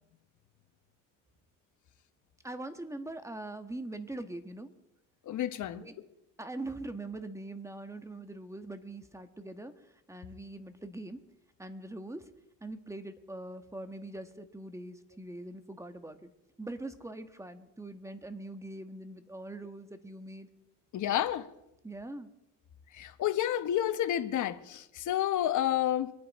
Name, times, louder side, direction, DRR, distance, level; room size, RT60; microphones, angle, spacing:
voice 1, 2.4-4.7 5.7-6.0 6.4-9.7 10.1-11.2 11.6-12.3 12.6-16.3 16.6-20.5 21.8-22.3, right 2 dB, 10° right, 9 dB, 1.5 m, -42 dB
voice 2, 5.3-5.8 20.9-21.5 22.9-26.1, left 12 dB, 60° left, 10 dB, 1.2 m, -30 dB
24.0 x 9.5 x 4.2 m, 0.88 s
supercardioid pair, 85°, 34 cm